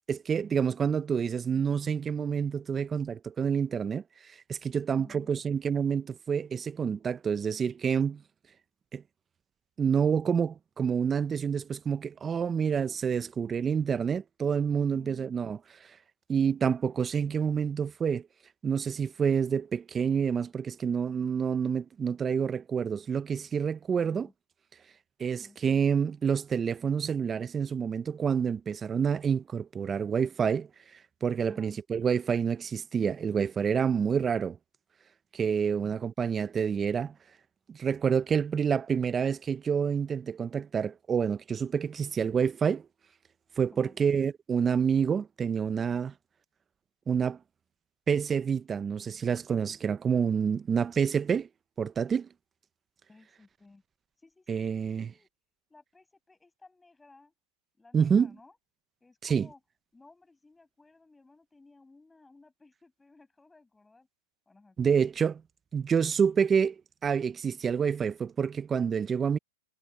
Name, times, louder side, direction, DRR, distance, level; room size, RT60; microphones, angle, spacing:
voice 1, 0.1-4.0 4.5-8.2 8.9-9.0 9.8-15.6 16.3-18.3 18.6-24.3 25.2-30.7 31.2-34.6 35.3-37.1 37.7-42.8 43.6-46.1 47.1-47.4 48.1-51.5 51.8-52.3 54.5-55.1 57.9-58.3 59.2-59.5 64.8-65.4 65.7-66.7 67.0-69.4, right 7 dB, 20° right, 1.0 m, -28 dB
voice 2, 5.0-5.3 14.9-15.3 24.0-24.3 25.4-25.6 31.5-31.7 35.7-36.0 43.7-44.0 53.1-53.8 54.2-55.3 55.7-57.3 57.8-58.6 59.0-59.6 59.9-64.1 64.5-65.1, left 3 dB, 10° left, 6.5 m, -57 dB
hypercardioid pair, 115°, 0 cm